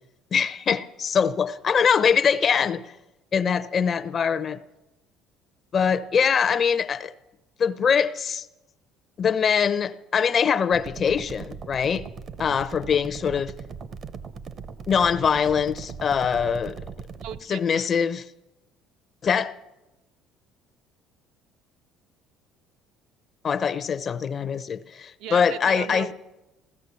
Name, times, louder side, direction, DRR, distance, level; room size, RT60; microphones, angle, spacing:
voice 1, 0.3-3.0 3.3-4.6 5.7-7.1 7.6-8.5 9.2-12.0 12.4-13.5 14.9-16.8 17.5-18.3 19.2-19.5 23.4-26.1, left 7 dB, 35° left, 13 dB, 0.7 m, -23 dB
sound 1, 10.7-17.4, right 6 dB, 35° right, 0.7 m, -39 dB
voice 2, 17.1-17.9 25.2-26.1, right 10 dB, 70° right, 10 dB, 0.7 m, -37 dB
16.0 x 13.0 x 6.9 m, 0.98 s
cardioid pair, 145°, 0 cm